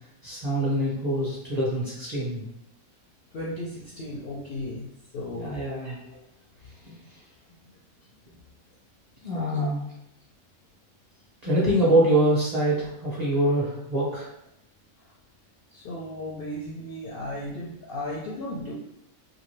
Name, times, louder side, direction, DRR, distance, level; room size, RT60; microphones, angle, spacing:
voice 1, 0.2-2.4 5.3-6.0 6.8-6.9 9.2-9.8 11.4-14.3, right 1 dB, 40° right, -7 dB, 0.7 m, -24 dB
voice 2, 3.3-4.9 5.1-5.9 9.5-9.7 15.7-18.7, left 1 dB, 65° left, -4 dB, 0.6 m, -35 dB
2.6 x 2.4 x 3.1 m, 0.81 s
omnidirectional pair, 1.5 m